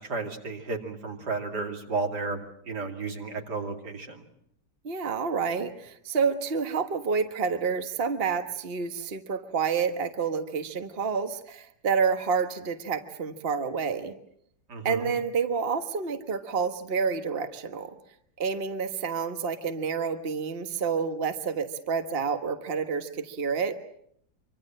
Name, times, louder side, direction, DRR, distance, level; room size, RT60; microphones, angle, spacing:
voice 1, 0.1-2.4 2.7-4.2 14.7-15.1, right 3 dB, 80° right, 3 dB, 3.2 m, -33 dB
voice 2, 4.8-14.1 14.8-17.9 18.4-23.8, right 5 dB, 40° right, 7 dB, 1.5 m, -29 dB
25.5 x 24.5 x 7.5 m, 0.70 s
omnidirectional pair, 1.8 m